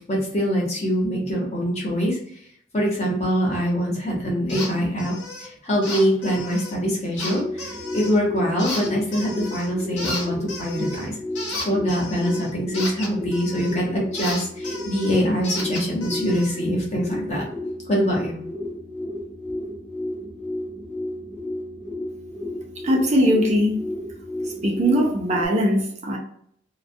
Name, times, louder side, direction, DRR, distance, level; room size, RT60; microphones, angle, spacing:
voice 1, 0.1-2.2 2.7-5.1 5.4-11.2 11.6-17.4 17.9-18.4, equal, 35° left, -2 dB, 0.8 m, -24 dB
sound 1, 4.5-4.7 5.0-5.5 5.8-6.7 7.2-8.2 8.6-9.7 10.0-13.8 14.1-16.5, left 2 dB, 80° left, 0.9 m, -33 dB
sound 2, 7.1-25.5, left 1 dB, 5° left, 0.5 m, -33 dB
voice 2, 22.8-23.8 24.4-26.2, equal, 40° right, -1 dB, 0.5 m, -20 dB
2.2 x 2.2 x 2.6 m, 0.66 s
head